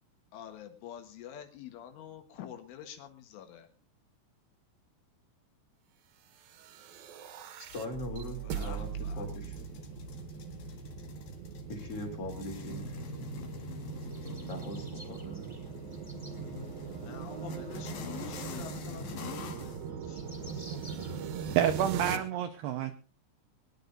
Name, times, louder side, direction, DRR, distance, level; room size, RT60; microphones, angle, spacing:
voice 1, 0.3-3.7 8.4-9.3 16.9-21.6, left 9 dB, 75° left, 7 dB, 4.0 m, -48 dB
sound 1, 6.4-22.2, right 7 dB, 65° right, 2.4 m, -41 dB
sound 2, 7.7-19.8, left 5 dB, 60° left, 2.9 m, -45 dB
voice 2, 7.7-8.9 9.2-9.7 11.7-13.0 14.4-15.5, left 1 dB, 30° left, 2 dB, 4.0 m, -40 dB
sound 3, 14.0-16.4 17.1-21.9, equal, 10° left, 2.1 m, -54 dB
voice 3, 21.6-22.9, right 10 dB, 80° right, 8 dB, 2.3 m, -28 dB
22.5 x 10.5 x 3.9 m, 0.35 s
omnidirectional pair, 5.8 m